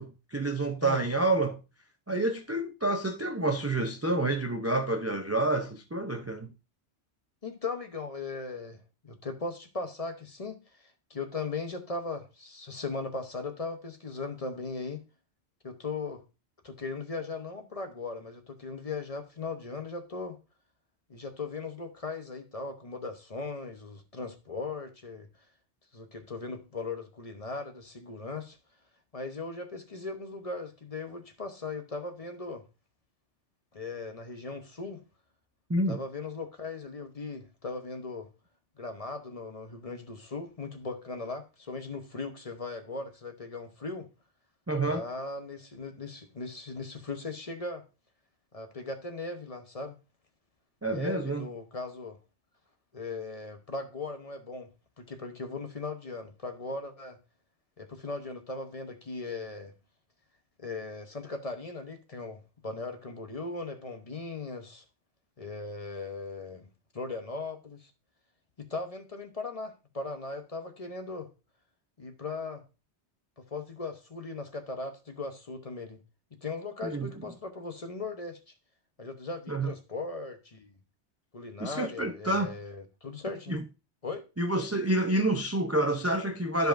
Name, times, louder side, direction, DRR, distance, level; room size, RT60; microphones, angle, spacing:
voice 1, 0.0-1.6 2.1-6.5 35.7-36.0 44.7-45.0 50.8-51.5 76.8-77.1 79.5-79.7 81.6-82.5 83.5-83.6 84.4-86.7, right 2 dB, 20° right, 0.4 m, -28 dB
voice 2, 7.4-15.0 15.6-16.2 16.6-20.4 21.1-25.3 25.9-28.6 29.1-32.6 33.7-35.0 35.9-38.3 38.8-44.1 44.8-47.8 48.5-50.0 50.8-52.2 52.9-54.7 55.0-57.2 57.8-59.7 60.6-64.8 65.4-66.7 66.9-67.9 68.6-71.3 72.0-72.6 73.4-76.0 76.3-78.4 79.0-80.8 81.3-83.5 84.0-84.2, left 3 dB, 35° left, 0.8 m, -38 dB
12.5 x 5.2 x 2.5 m
omnidirectional pair, 1.2 m